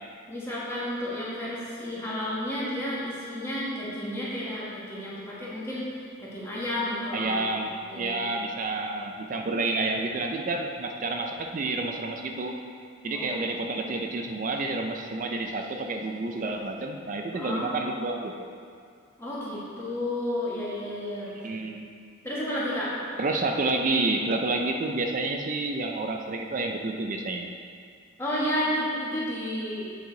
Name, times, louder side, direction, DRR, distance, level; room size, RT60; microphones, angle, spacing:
voice 1, 0.3-7.5 7.9-8.3 13.1-13.8 17.3-17.7 19.2-21.3 22.2-22.9 28.2-29.9, left 1 dB, 10° left, -8 dB, 1.3 m, -32 dB
voice 2, 7.1-12.5 13.0-18.5 21.4-21.9 23.2-27.5, right 2 dB, 40° right, 3 dB, 0.4 m, -29 dB
8.0 x 4.8 x 3.8 m, 2.2 s
head